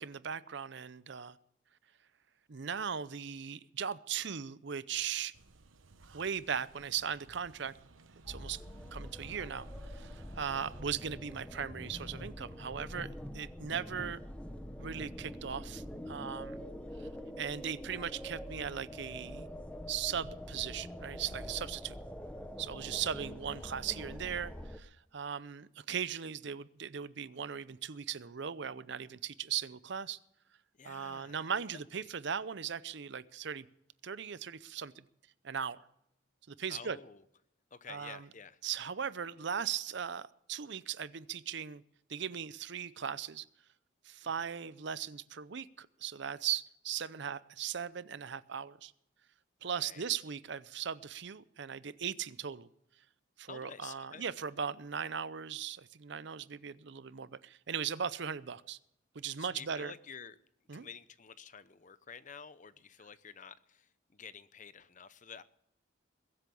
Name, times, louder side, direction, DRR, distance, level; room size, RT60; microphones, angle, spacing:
voice 1, 0.0-1.4 2.5-5.3 6.1-7.7 8.3-8.6 8.9-13.1 13.3-14.2 14.8-16.6 17.4-19.5 19.9-21.9 22.6-30.2 30.8-33.7 34.0-34.9 35.4-35.8 36.5-37.0 37.9-38.3 38.6-41.8 42.1-43.5 44.0-48.9 49.6-52.7 53.4-58.8 59.1-59.9 60.7-60.9, right 7 dB, 55° right, 16 dB, 0.6 m, -38 dB
sound 1, 5.3-10.8, right 3 dB, 75° right, 1.0 m, -58 dB
sound 2, 8.3-24.8, equal, 5° left, 0.8 m, -45 dB
voice 2, 30.8-31.5 31.9-32.1 36.7-37.2 37.7-38.6 44.4-44.5 49.6-50.1 53.5-54.2 59.4-60.4 60.7-65.4, left 6 dB, 40° left, 14 dB, 0.7 m, -50 dB
21.5 x 8.4 x 6.9 m, 0.78 s
head